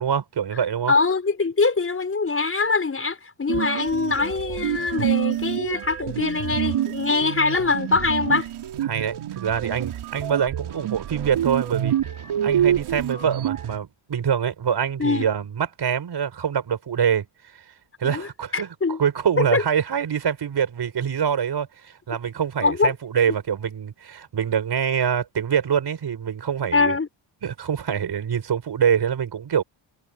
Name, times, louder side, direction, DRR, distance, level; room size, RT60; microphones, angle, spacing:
voice 1, 0.0-0.9 8.9-11.9 12.4-17.2 18.0-18.7 19.0-27.0 27.4-29.6, right 8 dB, 55° right, 6.5 m, -25 dB
voice 2, 0.9-8.5 15.0-15.3 18.0-18.3 18.5-19.0 19.4-19.6 22.6-22.9 26.7-27.1, left 4 dB, 25° left, 5.7 m, -23 dB
sound 1, 3.5-13.8, right 11 dB, 85° right, 4.4 m, -27 dB
cardioid pair, 120°, 48 cm